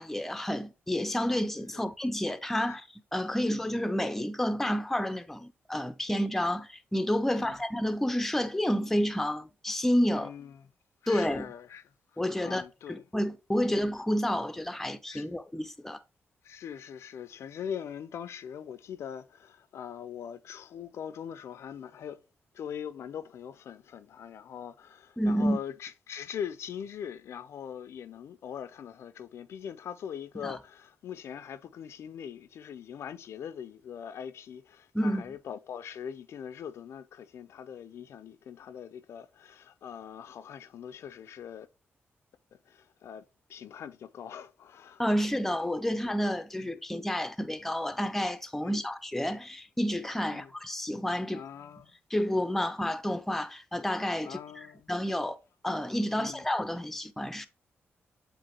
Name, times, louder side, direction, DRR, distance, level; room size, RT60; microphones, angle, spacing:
voice 1, 0.0-10.3 11.1-11.5 12.2-12.6 12.9-16.0 25.2-25.6 30.4-30.6 34.9-35.2 45.0-51.4 52.1-55.4 55.6-57.5, equal, 5° left, 0.4 m, -30 dB
voice 2, 10.2-10.6 11.0-13.0 13.6-13.8 15.1-15.3 16.4-22.2 22.5-41.7 42.7-43.2 43.5-45.0 45.9-46.0 46.6-46.7 48.6-48.8 50.2-50.5 51.3-51.9 54.2-54.9 56.1-56.4, left 8 dB, 80° left, 0.3 m, -42 dB
7.5 x 2.5 x 2.8 m
wide cardioid pair, 120°, 5 cm